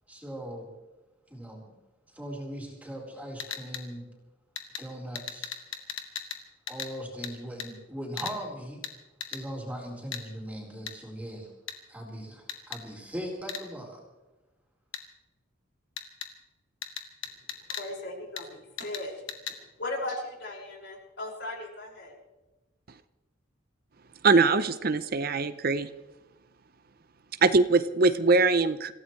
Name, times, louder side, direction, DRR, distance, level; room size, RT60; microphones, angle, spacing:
voice 1, 0.1-0.7 1.3-1.6 2.1-4.1 4.8-5.6 6.7-8.8 9.3-11.5 11.9-14.0, equal, 10° right, -2 dB, 4.2 m, -39 dB
sound 1, 3.4-3.8 4.6-4.8 5.1-6.4 6.7-6.9 7.2-7.3 7.6-7.7 8.2-8.4 8.8-8.9 9.2-9.4 10.1-10.2 10.9-11.0 11.7-11.8 12.5-12.8 13.5-13.6 14.9-15.0 16.0-16.3 16.8-17.9 18.4-18.5 18.8-19.0 19.3-19.6, left 8 dB, 80° left, 2.1 m, -37 dB
voice 2, 17.7-19.2 19.8-22.2, left 2 dB, 60° left, -1 dB, 5.7 m, -37 dB
voice 3, 24.2-25.9 27.4-28.9, right 3 dB, 50° right, 12 dB, 0.6 m, -22 dB
27.0 x 16.0 x 3.2 m, 1.1 s
head